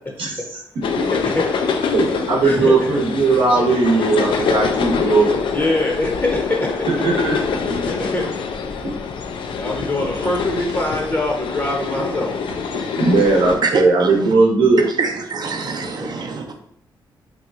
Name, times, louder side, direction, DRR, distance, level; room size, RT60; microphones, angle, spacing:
sound 1, 0.8-13.6, left 5 dB, 70° left, 0.4 m, -25 dB
voice 1, 1.1-1.4 2.4-3.0 5.5-6.7 7.8-8.2 9.5-12.3 15.8-16.1, left 2 dB, 25° left, -1 dB, 0.7 m, -23 dB
voice 2, 1.9-5.4 7.0-7.3 7.7-7.8 13.0-14.8, right 3 dB, 85° right, -2 dB, 0.8 m, -17 dB
voice 3, 12.7-14.3 14.8-16.5, right 4 dB, 50° right, 4 dB, 0.6 m, -26 dB
2.8 x 2.3 x 3.6 m, 0.68 s
cardioid pair, 60°, 9 cm